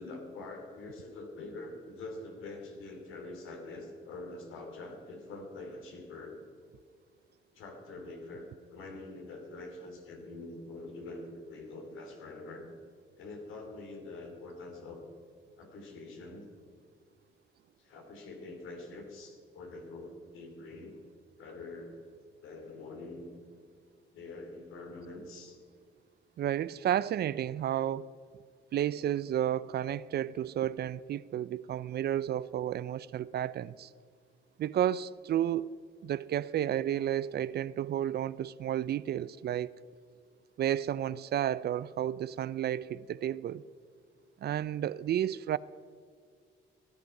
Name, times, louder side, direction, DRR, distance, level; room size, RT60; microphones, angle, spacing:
voice 1, 0.0-6.4 7.5-12.7 13.2-15.0 15.6-16.5 17.8-21.0 21.4-22.0 22.4-23.3 24.1-25.6, left 2 dB, 85° left, 2.9 m, -45 dB
voice 2, 26.4-28.1 28.7-33.9 34.6-35.8 36.0-39.7 40.6-43.6 44.4-45.6, right 11 dB, 55° right, 0.4 m, -32 dB
15.5 x 10.5 x 5.8 m
cardioid pair, 90°, 20 cm